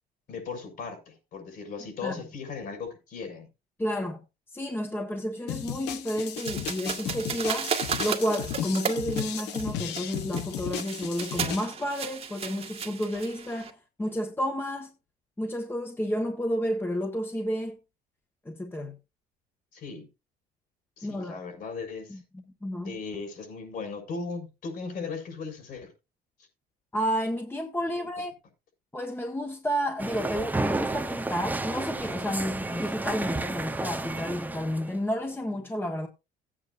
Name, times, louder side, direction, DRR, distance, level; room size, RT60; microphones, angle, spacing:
voice 1, 0.3-3.5 19.7-20.1 21.0-22.2 22.8-25.9 28.0-28.1, left 4 dB, 60° left, 6.3 m, -37 dB
voice 2, 3.8-4.2 4.5-14.9 15.4-17.8 18.4-19.0 21.0-21.4 22.1-23.0 26.9-28.3 28.9-36.1, equal, 10° left, 1.5 m, -31 dB
sound 1, 5.5-11.7, left 10 dB, 85° left, 1.1 m, -35 dB
sound 2, 6.4-13.7, right 6 dB, 35° right, 1.8 m, -34 dB
sound 3, 30.0-34.9, right 2 dB, 10° right, 0.9 m, -31 dB
17.0 x 8.8 x 2.6 m
cardioid pair, 110°, 17 cm